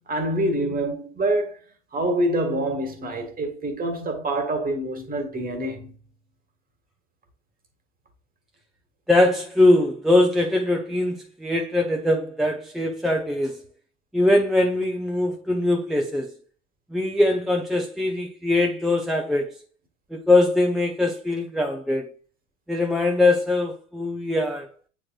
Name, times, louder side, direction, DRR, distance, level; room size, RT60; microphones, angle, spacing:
voice 1, 0.1-1.6 1.9-5.9, right 1 dB, 20° right, 1.6 m, -26 dB
voice 2, 9.1-13.6 14.1-16.3 16.9-19.6 20.1-22.1 22.7-24.7, left 2 dB, ahead, 0.7 m, -22 dB
8.6 x 4.6 x 2.4 m
figure-of-eight pair, 70°, 39 cm